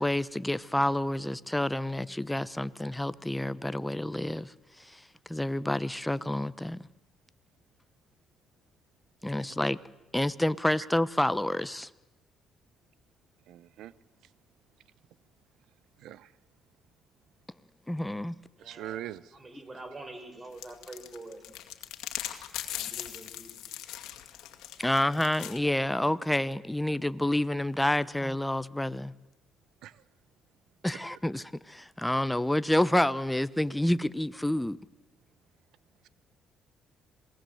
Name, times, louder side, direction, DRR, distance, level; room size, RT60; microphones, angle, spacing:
voice 1, 0.0-4.5 4.8-5.0 5.3-6.8 9.2-9.8 10.1-11.9 17.9-18.4 24.8-29.1 30.8-34.8, left 1 dB, 5° left, 16 dB, 0.9 m, -28 dB
voice 2, 13.5-13.9 16.0-16.3 18.6-19.4 29.8-30.0, right 12 dB, 80° right, 20 dB, 0.8 m, -42 dB
voice 3, 18.5-19.0 19.3-21.4 22.7-23.6, right 2 dB, 25° right, 8 dB, 4.8 m, -45 dB
sound 1, 20.6-25.6, left 13 dB, 85° left, 2.1 m, -39 dB
27.0 x 19.5 x 7.9 m, 1.1 s
cardioid pair, 80°, 0 cm